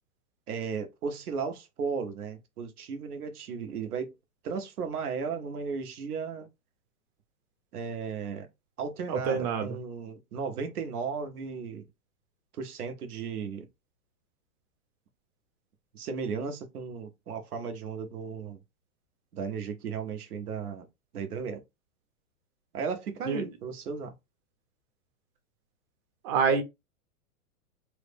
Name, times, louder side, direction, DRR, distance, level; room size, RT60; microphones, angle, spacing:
voice 1, 0.5-4.1 4.4-6.5 7.7-8.5 8.8-11.9 12.6-13.7 15.9-18.6 19.3-20.9 21.1-21.6 22.7-24.1, right 5 dB, 90° right, 0.9 m, -35 dB
voice 2, 9.1-9.8 23.3-23.5 26.2-26.6, right 5 dB, 35° right, 0.7 m, -26 dB
3.1 x 2.1 x 3.3 m
hypercardioid pair, 135°, 44 cm